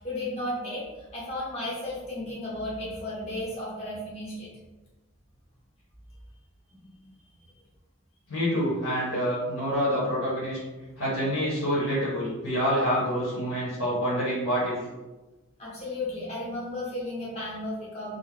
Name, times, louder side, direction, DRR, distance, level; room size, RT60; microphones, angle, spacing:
voice 1, 0.0-4.5 6.7-7.0 7.4-7.5 15.6-18.2, left 1 dB, 30° left, -7 dB, 0.7 m, -34 dB
voice 2, 8.3-10.6 11.0-14.8, equal, 75° left, -7 dB, 0.8 m, -27 dB
2.4 x 2.0 x 3.1 m, 1.1 s
head